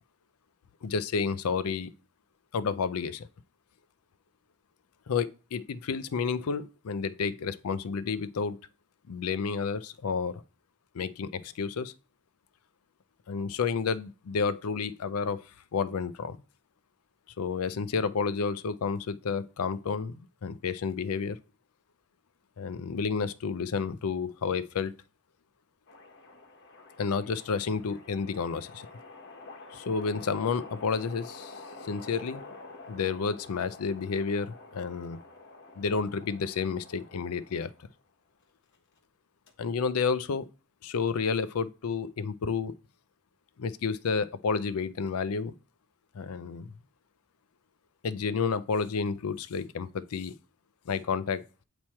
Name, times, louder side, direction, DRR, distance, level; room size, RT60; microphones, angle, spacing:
voice 1, 0.8-1.9 2.5-3.3 5.1-8.6 9.1-10.4 10.9-11.9 13.3-15.4 15.7-16.4 17.4-21.4 22.6-24.9 27.0-28.9 29.7-32.4 32.9-35.2 35.8-37.7 39.6-40.5 40.8-42.7 43.6-45.5 46.1-46.7 48.0-50.3 50.9-51.4, left 5 dB, 80° left, 0.5 m, -30 dB
sound 1, 25.9-38.0 38.7-39.0 39.5-39.6, left 3 dB, 60° left, 1.3 m, -48 dB
8.6 x 3.1 x 4.3 m
head